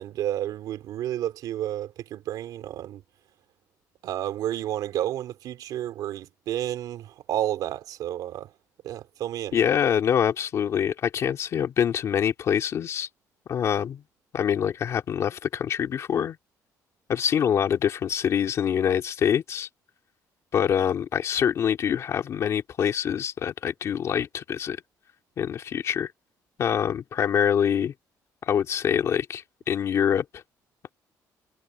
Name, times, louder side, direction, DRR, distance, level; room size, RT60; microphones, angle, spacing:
voice 1, 0.0-3.0 4.0-8.5 8.8-9.6, right 12 dB, 70° right, 3.5 m, -31 dB
voice 2, 9.5-13.1 13.5-14.0 14.3-16.4 17.1-19.7 20.5-24.8 25.4-26.1 26.6-27.9 28.4-30.4, left 8 dB, 45° left, 2.5 m, -25 dB
cardioid pair, 165°, 7 cm